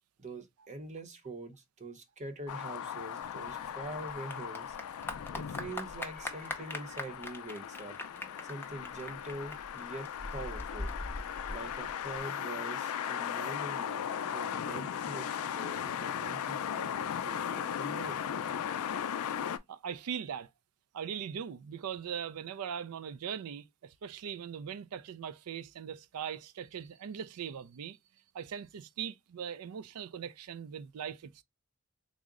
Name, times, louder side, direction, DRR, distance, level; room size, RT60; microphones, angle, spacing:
voice 1, 0.2-4.8 5.3-8.0 8.4-10.9 11.5-18.2, right 2 dB, 30° right, 0.7 m, -44 dB
sound 1, 2.5-19.6, left 8 dB, 75° left, 0.4 m, -37 dB
Clapping / Applause, 3.2-12.2, left 2 dB, 10° left, 0.5 m, -42 dB
voice 2, 19.7-20.5 20.9-28.0 28.3-31.4, right 8 dB, 80° right, 0.4 m, -40 dB
3.7 x 2.1 x 3.5 m
head